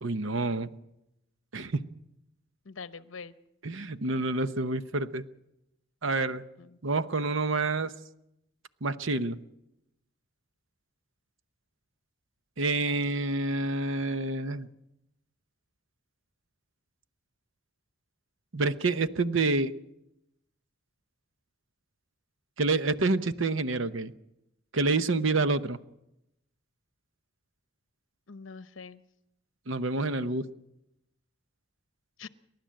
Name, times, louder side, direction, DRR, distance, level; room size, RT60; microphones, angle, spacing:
voice 1, 0.0-0.7 1.5-1.8 3.6-5.2 6.0-6.4 6.8-7.9 8.8-9.4 12.6-14.7 18.5-19.7 22.6-24.1 24.7-25.8 29.7-30.5, right 3 dB, 70° right, 12 dB, 0.9 m, -28 dB
voice 2, 2.6-3.3 6.6-6.8 12.8-13.0 28.3-29.0 32.2-32.3, left 5 dB, 75° left, 13 dB, 0.9 m, -44 dB
29.5 x 12.0 x 7.6 m, 0.87 s
head